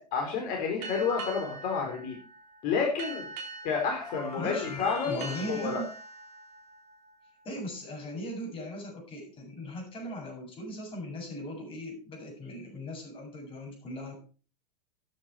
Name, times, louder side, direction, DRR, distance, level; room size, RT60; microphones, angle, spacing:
voice 1, 0.1-2.2 2.6-3.3 3.6-5.8, left 5 dB, 45° left, 1 dB, 4.3 m, -30 dB
sound 1, 0.8-8.1, right 4 dB, 40° right, 4.3 m, -44 dB
sound 2, 1.1-1.5 4.0-6.2, left 3 dB, 75° left, 4.7 m, -43 dB
voice 2, 4.3-5.9 7.4-14.1, equal, 25° left, 0 dB, 7.8 m, -39 dB
13.5 x 9.8 x 4.8 m, 0.38 s
figure-of-eight pair, 95°, 20 cm